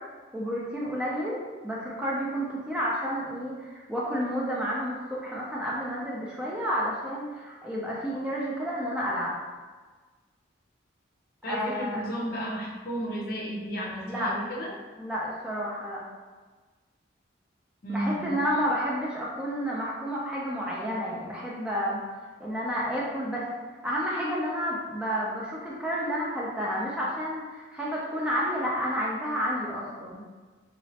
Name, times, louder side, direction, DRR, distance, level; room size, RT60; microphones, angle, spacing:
voice 1, 0.3-9.3 11.4-12.0 14.1-14.3 15.0-16.0 17.9-22.0 22.4-23.5 23.8-30.2, equal, 5° right, -6 dB, 0.4 m, -30 dB
voice 2, 11.4-14.7 17.8-18.3, equal, 50° left, -2 dB, 0.5 m, -33 dB
3.1 x 3.0 x 2.8 m, 1.4 s
head